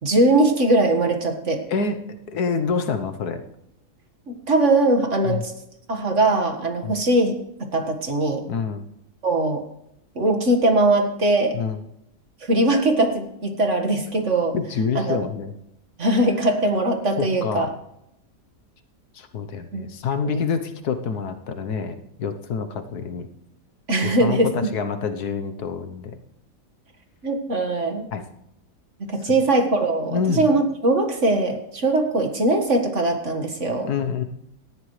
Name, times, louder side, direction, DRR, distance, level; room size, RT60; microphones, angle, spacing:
voice 1, 0.0-1.6 4.3-5.5 5.9-7.3 7.7-8.4 9.2-9.6 10.2-11.6 12.4-14.5 15.0-15.2 16.0-17.7 19.7-19.9 20.2-20.4 23.9-24.5 27.2-28.1 29.0-33.9, right 2 dB, 45° right, 4 dB, 1.9 m, -21 dB
voice 2, 1.7-2.0 2.3-3.4 5.2-5.4 6.8-6.9 8.5-8.8 11.5-11.8 14.5-15.5 17.2-17.7 19.1-23.3 24.0-26.2 28.1-28.2 30.1-30.4 33.9-34.2, left 5 dB, 70° left, 7 dB, 1.5 m, -27 dB
18.5 x 13.5 x 3.2 m, 0.80 s
omnidirectional pair, 1.7 m